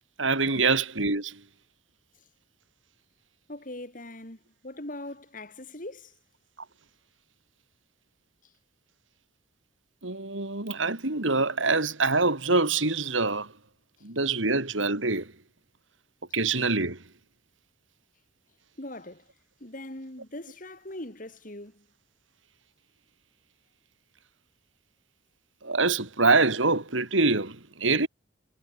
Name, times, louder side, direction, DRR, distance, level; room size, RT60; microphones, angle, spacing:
voice 1, 0.2-1.4 10.0-13.5 14.0-15.3 16.3-17.0 25.6-28.1, right 3 dB, 80° right, 3.5 m, -25 dB
voice 2, 3.5-4.4 4.6-6.1 18.8-19.2 19.6-21.8, left 1 dB, 45° left, 3.9 m, -41 dB
head